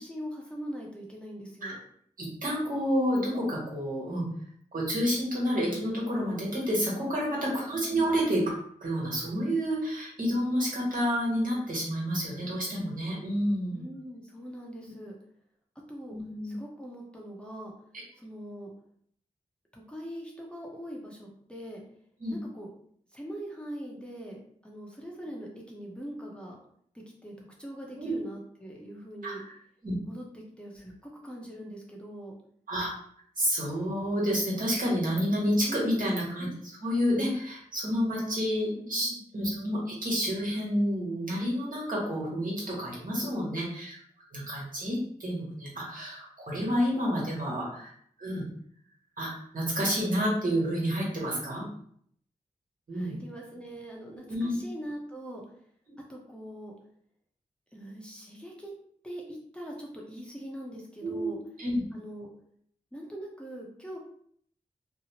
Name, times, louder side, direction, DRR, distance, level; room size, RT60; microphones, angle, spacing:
voice 1, 0.0-1.8 7.4-7.9 13.7-15.1 15.9-16.2 16.4-17.7 18.2-18.7 19.7-21.8 22.3-22.7 23.1-26.6 26.9-27.3 27.6-29.4 30.0-32.3 35.5-36.0 38.7-39.2 43.1-43.5 52.9-55.4 56.1-56.7 57.7-58.7 59.0-61.4 61.9-62.3 62.9-64.0, equal, 5° left, -2 dB, 0.8 m, -42 dB
voice 2, 2.2-4.2 4.7-8.4 8.8-13.8 16.1-16.5 22.2-22.3 28.0-28.1 29.2-29.4 29.8-29.9 32.7-32.9 33.4-44.0 44.3-47.9 48.2-48.4 49.2-51.7 52.9-53.1 54.3-54.5 61.0-61.8, equal, 65° right, -5 dB, 1.2 m, -29 dB
2.7 x 2.0 x 2.9 m, 0.64 s
cardioid pair, 40°, 15 cm